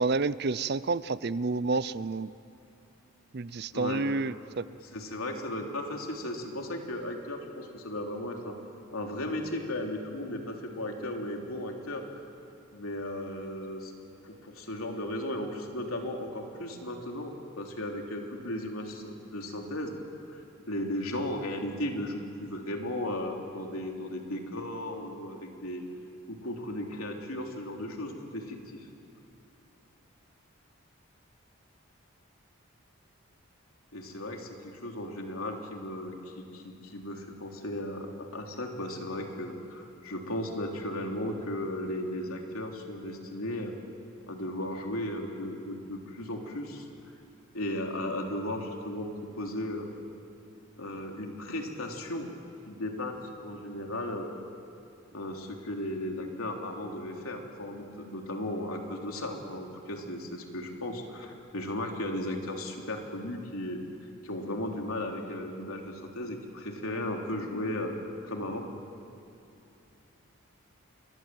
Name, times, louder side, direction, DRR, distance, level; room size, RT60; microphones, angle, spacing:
voice 1, 0.0-2.3 3.3-4.6, right 3 dB, 50° right, 17 dB, 0.5 m, -29 dB
voice 2, 3.7-4.1 4.8-8.5 8.9-12.0 12.7-13.9 14.2-20.0 20.3-25.8 26.3-28.9 33.9-43.7 44.3-46.8 47.5-49.1 49.4-49.9 50.8-52.3 52.7-53.2 53.4-54.3 55.1-63.8 64.2-67.9 68.2-68.7, left 1 dB, 85° left, 1 dB, 3.4 m, -36 dB
28.5 x 22.5 x 7.7 m, 2.7 s
head